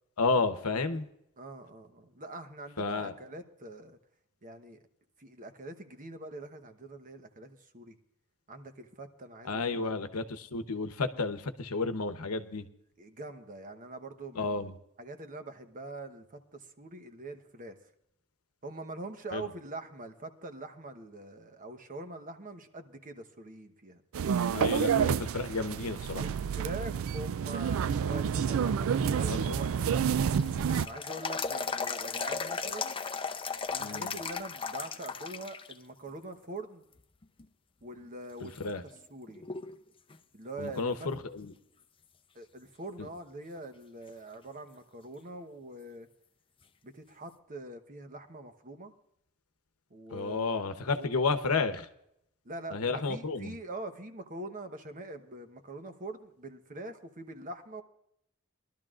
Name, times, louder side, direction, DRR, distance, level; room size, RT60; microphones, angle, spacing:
voice 1, 0.2-1.1 2.8-3.1 9.4-12.7 14.3-14.8 19.3-19.5 24.5-26.2 29.3-29.6 33.8-34.2 38.4-38.8 40.6-41.5 43.0-43.1 50.1-51.9 52.7-53.6, left 4 dB, 90° left, 9 dB, 0.9 m, -32 dB
voice 2, 0.7-1.0 1.4-4.0 4.4-4.8 5.2-8.0 8.5-9.9 13.0-14.7 15.0-17.8 18.6-24.0 24.8-25.0 26.2-30.3 30.8-33.0 33.7-36.8 37.8-38.7 39.1-39.4 40.3-41.1 42.3-46.1 46.8-48.9 49.9-50.6 51.0-51.1 52.4-57.8, right 2 dB, 40° right, 8 dB, 1.0 m, -44 dB
sound 1, 24.1-30.9, right 7 dB, 65° right, 0.4 m, -29 dB
sound 2, 29.6-35.7 36.1-36.2 37.0-37.5 38.0-38.1 38.6-39.8 40.1-40.2 43.6-43.7 46.6-46.7, left 5 dB, 25° left, 0.6 m, -36 dB
21.5 x 12.5 x 2.5 m, 0.76 s
head